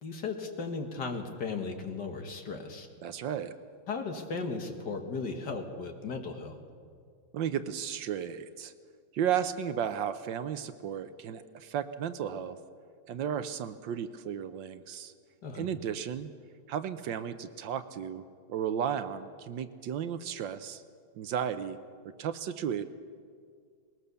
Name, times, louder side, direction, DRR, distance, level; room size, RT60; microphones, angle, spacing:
voice 1, 0.0-2.9 3.9-6.6 15.4-15.7, left 4 dB, 55° left, 5 dB, 2.0 m, -36 dB
voice 2, 3.0-3.5 7.3-8.7 9.1-12.6 13.1-15.1 15.5-16.3 16.7-18.2 18.5-20.8 21.1-21.8 22.2-22.8, right 8 dB, 70° right, 11 dB, 1.4 m, -34 dB
20.5 x 19.0 x 6.9 m, 2.1 s
omnidirectional pair, 2.2 m